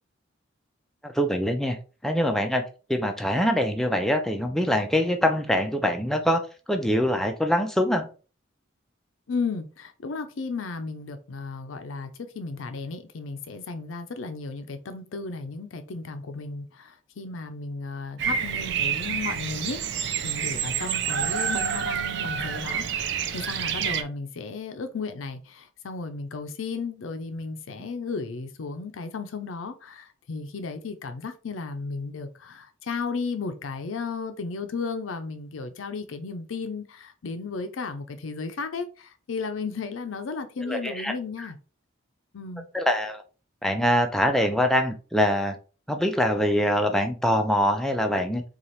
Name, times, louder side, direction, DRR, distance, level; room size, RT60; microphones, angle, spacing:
voice 1, 1.0-1.8 2.0-2.6 2.9-6.4 6.7-8.1 40.7-41.1 41.4-41.5 42.7-43.2 43.6-45.5 45.9-48.4, equal, ahead, 0.5 m, -24 dB
voice 2, 9.3-41.6 42.3-42.7, left 4 dB, 85° left, 0.5 m, -34 dB
Bird vocalization bird call bird song, 18.2-24.0, right 7 dB, 60° right, 0.4 m, -28 dB
4.1 x 2.4 x 3.1 m
head